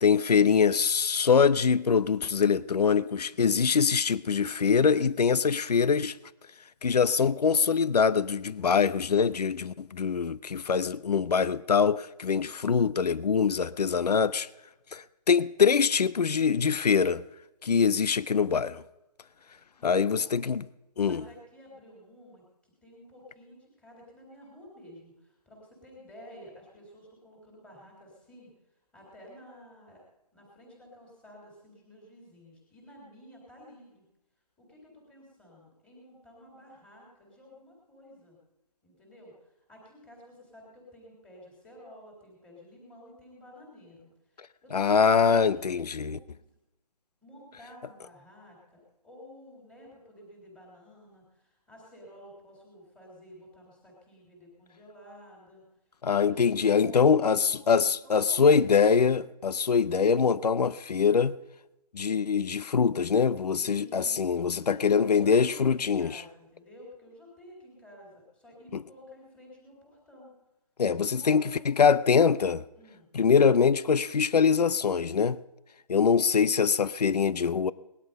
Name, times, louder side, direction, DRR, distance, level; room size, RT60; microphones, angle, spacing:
voice 1, 0.0-6.2 6.8-14.5 14.9-17.2 17.6-18.8 19.8-20.7 21.0-21.2 44.7-46.2 56.0-61.4 61.9-66.2 68.7-68.8 70.8-72.6 73.1-75.4 75.9-77.7, left 6 dB, 75° left, 0.7 m, -24 dB
voice 2, 19.8-20.4 21.0-28.5 28.9-30.0 30.3-34.0 34.6-38.4 38.8-45.8 46.0-46.2 47.2-55.6 56.2-57.8 58.0-58.8 63.5-70.3 71.0-71.7 72.7-73.1, left 1 dB, 5° left, 3.5 m, -52 dB
19.5 x 11.5 x 5.3 m
hypercardioid pair, 165°, 20 cm